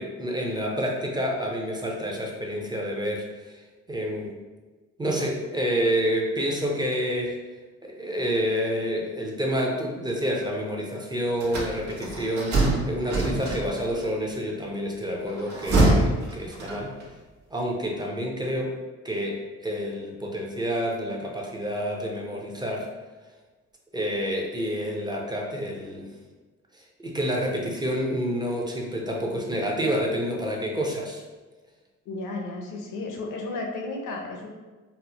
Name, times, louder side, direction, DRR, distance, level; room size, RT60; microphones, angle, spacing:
voice 1, 0.0-3.6 3.9-4.3 5.0-7.4 7.8-17.0 17.5-18.7 19.0-22.9 23.9-26.1 27.0-31.2, equal, 15° right, -1 dB, 0.6 m, -28 dB
sound 1, 11.4-14.0 15.3-17.1, right 2 dB, 65° right, 0.9 m, -24 dB
voice 2, 32.1-34.5, left 2 dB, 85° left, 1 dB, 0.7 m, -33 dB
4.1 x 2.0 x 2.8 m, 1.3 s
cardioid pair, 90°, 30 cm